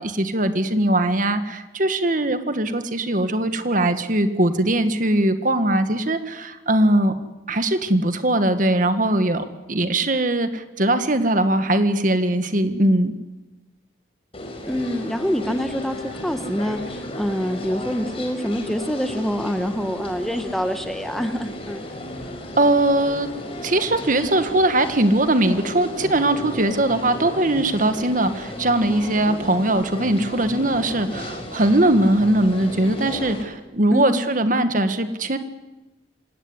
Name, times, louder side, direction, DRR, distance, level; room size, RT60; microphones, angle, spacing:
voice 1, 0.0-7.1 7.5-13.1 22.6-23.3 23.6-35.4, right 1 dB, 45° right, 9 dB, 1.7 m, -20 dB
sound 1, 14.3-33.4, left 1 dB, 30° left, 4.4 m, -34 dB
voice 2, 14.7-21.9 33.9-34.2, equal, ahead, 8 dB, 1.3 m, -26 dB
26.0 x 17.5 x 9.9 m, 1.1 s
head